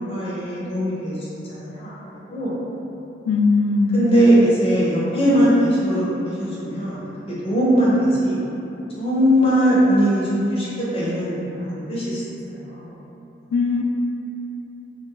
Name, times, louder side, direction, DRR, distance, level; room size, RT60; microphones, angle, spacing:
voice 1, 0.0-1.9 2.3-2.6 3.9-8.4 9.0-12.2 12.5-12.9, equal, 30° left, -9 dB, 0.7 m, -20 dB
voice 2, 3.3-4.0 13.5-13.8, left 4 dB, 90° left, 3 dB, 0.3 m, -19 dB
2.3 x 2.2 x 3.7 m, 3.0 s
head